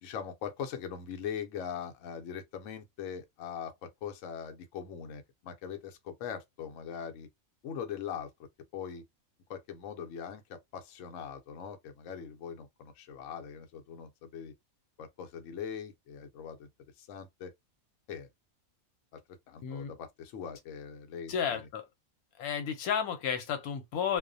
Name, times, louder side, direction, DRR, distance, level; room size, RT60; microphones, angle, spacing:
voice 1, 0.0-7.3 7.6-8.3 8.7-9.0 9.5-14.5 15.0-16.7 17.0-17.5 18.1-18.3 19.5-21.7, left 7 dB, 70° left, 0.9 m, -41 dB
voice 2, 19.6-20.0 21.3-21.9 22.4-24.2, left 7 dB, 85° left, 1.1 m, -32 dB
2.4 x 2.1 x 2.5 m
omnidirectional pair, 1.5 m